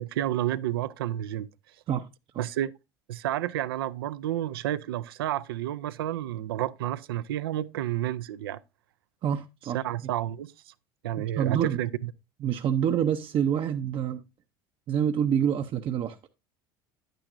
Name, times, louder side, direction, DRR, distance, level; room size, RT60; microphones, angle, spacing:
voice 1, 0.0-1.5 2.4-2.7 3.1-8.6 9.6-10.7 11.0-12.1, right 12 dB, 85° right, 0.5 m, -30 dB
voice 2, 9.2-9.8 11.4-11.8 12.4-14.2 14.9-16.2, right 9 dB, 45° right, 0.7 m, -26 dB
10.0 x 9.0 x 2.6 m
hypercardioid pair, 75°, 12 cm